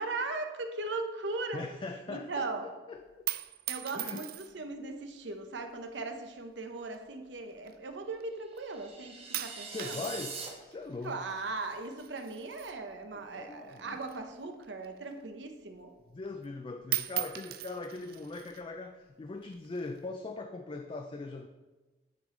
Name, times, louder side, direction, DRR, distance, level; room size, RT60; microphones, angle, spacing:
voice 1, 0.0-1.6 2.1-2.7 3.7-10.1 11.0-15.9, right 3 dB, 80° right, 6 dB, 0.8 m, -38 dB
voice 2, 1.5-3.0 4.0-4.2 9.7-10.4 10.7-11.2 13.3-14.0 16.1-21.5, left 3 dB, 30° left, 5 dB, 0.3 m, -40 dB
sound 1, 3.0-4.7 5.6-6.0 6.8-8.2 8.6-9.0 9.3-13.4 13.7-15.4 15.7-15.8 16.2-16.6 16.8-18.6 19.4-20.0, right 15 dB, 55° right, 0.4 m, -40 dB
sound 2, 8.5-10.5, right 4 dB, 35° right, 1.0 m, -43 dB
9.2 x 5.2 x 3.8 m, 1.2 s
head